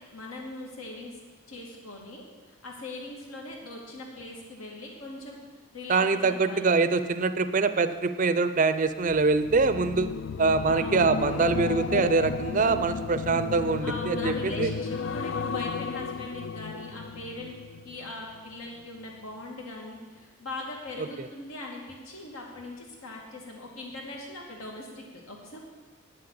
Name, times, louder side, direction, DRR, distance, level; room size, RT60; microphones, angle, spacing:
voice 1, 0.1-1.2 1.5-5.4 5.7-6.7 10.7-11.2 13.8-17.6 17.8-25.6, left 2 dB, 80° left, -1 dB, 2.5 m, -40 dB
voice 2, 5.9-10.1 10.4-14.7, right 4 dB, 35° right, 11 dB, 0.5 m, -24 dB
sound 1, 9.0-18.4 18.7-19.1, left 5 dB, 60° left, 0.3 m, -33 dB
9.2 x 7.7 x 8.7 m, 1.4 s
head